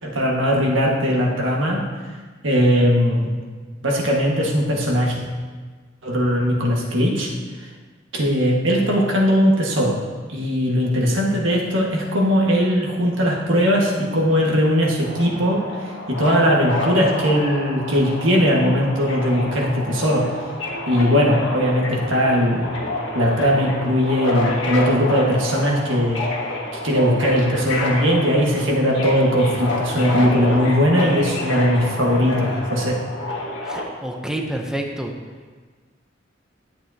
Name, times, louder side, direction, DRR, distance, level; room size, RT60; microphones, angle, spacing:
voice 1, 0.0-1.8 2.4-3.3 3.8-5.2 6.0-7.3 8.1-10.0 10.3-15.6 16.1-20.3 20.9-22.7 23.1-26.2 26.8-33.0, equal, 90° right, -2 dB, 1.6 m, -19 dB
Subway metro underground, 15.0-33.8, left 1 dB, 75° left, 1.4 m, -29 dB
voice 2, 33.6-35.1, right 1 dB, 5° right, 1 dB, 0.6 m, -28 dB
11.5 x 7.6 x 2.8 m, 1.4 s
head